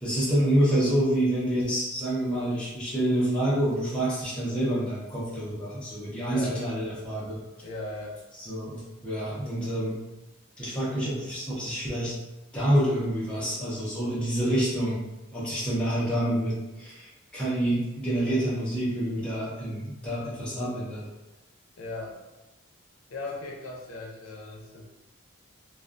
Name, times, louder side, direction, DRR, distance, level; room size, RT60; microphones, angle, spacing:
voice 1, 0.0-7.4 8.4-10.0 10.6-12.2 12.5-15.1 15.3-21.0, right 1 dB, 5° left, -9 dB, 0.6 m, -27 dB
voice 2, 6.2-6.6 7.6-8.2 21.8-22.1 23.1-24.9, left 2 dB, 85° left, 0 dB, 0.5 m, -37 dB
2.3 x 2.3 x 2.4 m, 1.0 s
head